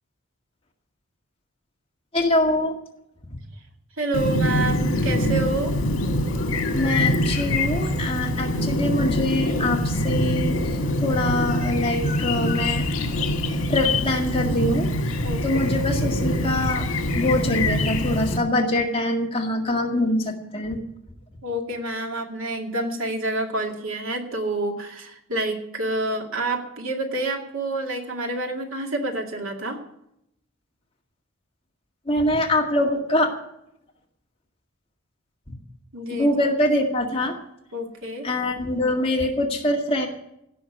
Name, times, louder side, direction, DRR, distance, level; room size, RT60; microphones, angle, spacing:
voice 1, 2.1-2.8 3.3-3.4 6.7-10.6 11.0-12.9 13.7-14.9 15.4-20.8 32.1-33.3 36.1-37.3 38.2-40.1, left 1 dB, 25° left, 1 dB, 1.9 m, -24 dB
voice 2, 4.0-5.7 15.2-15.7 21.4-29.8 35.9-36.3 37.7-38.3, right 2 dB, 80° right, 2 dB, 2.4 m, -28 dB
Chirp tweet, 4.1-18.4, left 1 dB, 80° left, 1.7 m, -24 dB
16.5 x 6.4 x 9.1 m, 0.79 s
head